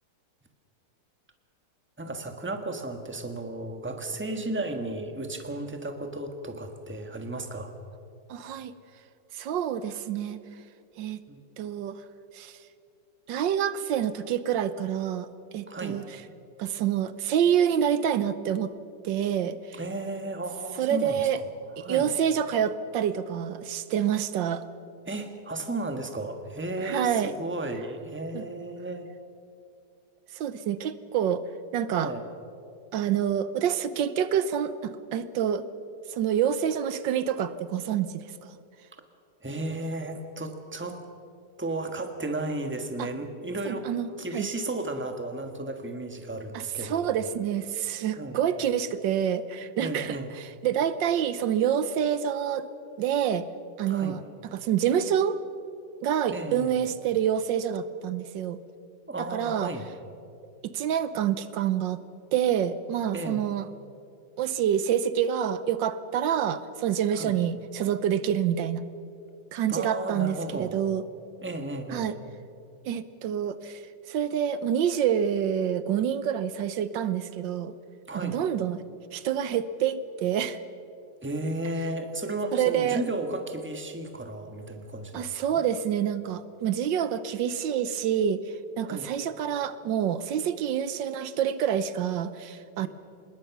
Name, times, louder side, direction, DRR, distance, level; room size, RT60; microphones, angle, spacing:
voice 1, 2.0-7.7 11.3-11.4 15.7-16.0 19.7-21.2 21.8-22.1 25.1-29.1 31.9-32.2 39.4-41.0 41.6-43.9 44.2-47.1 48.2-48.4 49.8-50.3 53.9-54.2 56.3-56.9 59.1-59.9 63.1-63.6 67.1-67.3 69.7-70.9 71.4-72.1 78.1-78.4 81.2-85.3 85.5-85.6 88.8-89.1, right 2 dB, 5° right, 6 dB, 1.4 m, -34 dB
voice 2, 8.3-8.7 9.3-10.4 11.0-11.2 11.6-12.0 12.3-12.6 13.3-15.3 15.5-16.0 16.6-18.7 19.0-19.8 20.8-21.4 21.8-24.6 26.8-27.3 28.3-28.4 30.3-31.4 31.7-32.1 32.9-35.7 36.1-38.3 43.0-43.1 43.6-44.5 46.5-52.7 53.0-53.5 53.8-54.2 54.5-55.4 56.0-58.6 59.3-59.7 60.6-62.0 62.3-63.6 64.4-68.8 69.5-71.0 71.9-72.2 72.9-77.7 78.2-78.8 79.1-80.6 82.5-83.0 85.1-88.4 88.8-92.9, right 9 dB, 80° right, 14 dB, 1.5 m, -27 dB
25.5 x 20.5 x 6.1 m, 2.5 s
omnidirectional pair, 2.0 m